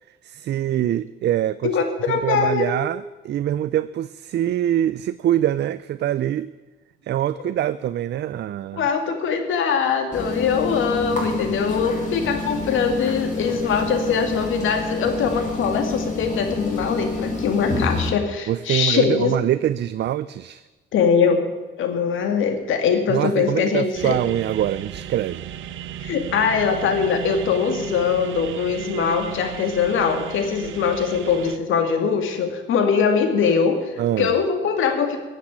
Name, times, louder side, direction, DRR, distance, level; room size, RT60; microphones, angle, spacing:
voice 1, 0.2-1.8 2.1-6.5 7.0-8.9 18.5-20.6 23.1-25.5 34.0-34.3, right 12 dB, 60° right, 15 dB, 0.5 m, -24 dB
voice 2, 1.6-2.7 8.7-19.4 20.9-21.4 21.8-24.2 26.0-35.2, left 6 dB, 80° left, 6 dB, 2.2 m, -22 dB
sound 1, 10.1-18.1, left 3 dB, 40° left, 5.2 m, -28 dB
sound 2, 23.9-31.6, right 10 dB, 80° right, 0.9 m, -35 dB
14.5 x 8.3 x 8.7 m, 1.2 s
cardioid pair, 90°, 20 cm